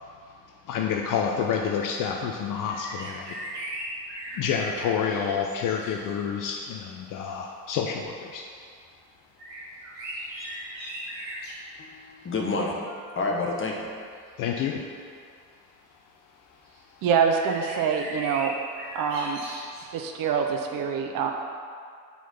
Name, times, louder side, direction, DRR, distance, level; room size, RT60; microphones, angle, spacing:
voice 1, 0.7-3.4 4.3-8.5 14.4-14.8, left 7 dB, 40° left, 2 dB, 0.5 m, -28 dB
sound 1, 2.6-6.1 6.8-7.0 9.4-11.6 13.6-14.0 14.8-14.9 16.6-16.8 17.2-19.8, right 1 dB, 80° right, 1.5 m, -38 dB
voice 2, 11.8-13.9, left 3 dB, 25° left, -1 dB, 1.1 m, -29 dB
voice 3, 17.0-18.5 18.9-19.4 19.9-21.3, right 6 dB, 45° right, 3 dB, 0.6 m, -25 dB
4.5 x 4.1 x 5.7 m, 2.2 s
figure-of-eight pair, 60°, 50 cm